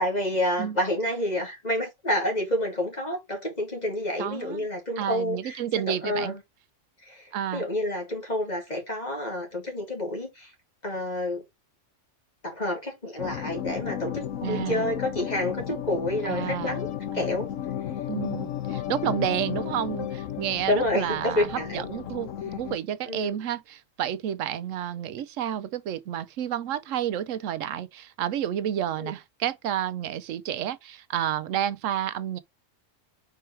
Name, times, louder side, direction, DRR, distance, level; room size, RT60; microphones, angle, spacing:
voice 1, 0.0-5.6 5.9-6.4 7.0-10.5 10.8-11.4 12.4-16.9 17.1-17.5 20.7-22.1 23.1-23.4 29.0-29.1, left 1 dB, 30° left, 2.6 m, -29 dB
voice 2, 4.2-4.7 5.0-6.3 7.3-7.6 14.4-14.9 16.2-16.8 17.1-17.3 18.1-22.3 22.6-32.4, right 10 dB, 85° right, 1.0 m, -30 dB
sound 1, 13.2-22.8, left 10 dB, 80° left, 1.2 m, -33 dB
4.7 x 4.5 x 4.5 m
omnidirectional pair, 1.3 m